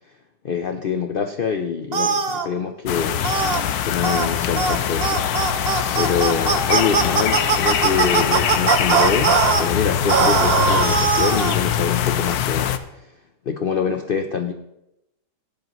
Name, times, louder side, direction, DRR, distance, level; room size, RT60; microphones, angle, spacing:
voice 1, 0.4-3.2 3.8-5.6 6.0-13.1 13.5-14.5, left 6 dB, 85° left, 6 dB, 0.4 m, -25 dB
sound 1, 1.9-2.5 3.2-3.6 4.0-4.3 4.6-4.8 5.0-9.6 10.1-11.6, right 5 dB, 45° right, 0.9 m, -20 dB
sound 2, 2.9-12.8, left 9 dB, 70° left, 1.1 m, -23 dB
17.0 x 11.0 x 3.1 m, 0.89 s
omnidirectional pair, 1.8 m